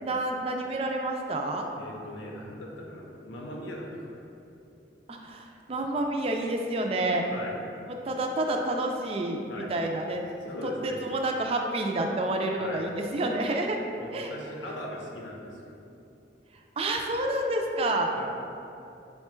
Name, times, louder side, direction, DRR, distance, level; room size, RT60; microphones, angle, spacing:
voice 1, 0.0-1.7 5.1-7.3 8.0-10.2 10.6-13.8 14.1-14.3 16.8-18.3, right 2 dB, 30° right, 2 dB, 0.3 m, -29 dB
voice 2, 1.8-4.2 7.3-7.6 9.5-9.7 10.4-11.0 12.6-12.9 14.0-15.8 18.1-18.3, left 1 dB, 85° left, -1 dB, 0.7 m, -40 dB
4.9 x 2.2 x 4.4 m, 2.7 s
head